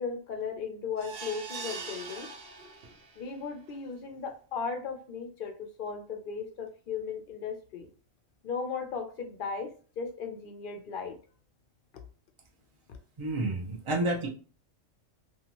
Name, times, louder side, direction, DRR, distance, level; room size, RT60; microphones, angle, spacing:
voice 1, 0.0-2.3 3.2-7.9 8.4-11.2, left 5 dB, 60° left, 5 dB, 0.6 m, -36 dB
sound 1, 1.0-3.2 3.7-3.8 4.1-4.2, right 4 dB, 60° right, 0.9 m, -42 dB
voice 2, 13.2-14.3, right 2 dB, 35° right, 0 dB, 0.5 m, -30 dB
2.7 x 2.3 x 2.9 m, 0.38 s
omnidirectional pair, 1.3 m